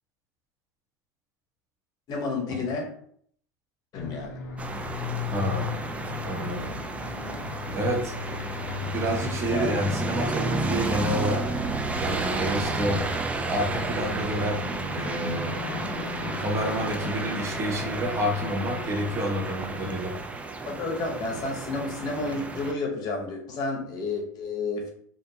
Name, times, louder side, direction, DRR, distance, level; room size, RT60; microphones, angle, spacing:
voice 1, 2.1-2.9 3.9-4.4 9.5-9.7 20.7-24.9, left 3 dB, 40° left, 1 dB, 0.8 m, -31 dB
sound 1, 3.9-20.0, left 7 dB, 80° left, 0.4 m, -38 dB
sound 2, 4.6-22.7, right 3 dB, 15° right, 0.4 m, -32 dB
voice 2, 5.3-5.8 6.2-6.7 7.7-8.1 8.9-11.4 12.0-13.0 13.5-14.6 14.9-20.1, equal, 30° right, 0 dB, 0.8 m, -29 dB
2.6 x 2.1 x 2.7 m, 0.62 s
hypercardioid pair, 100°, 10 cm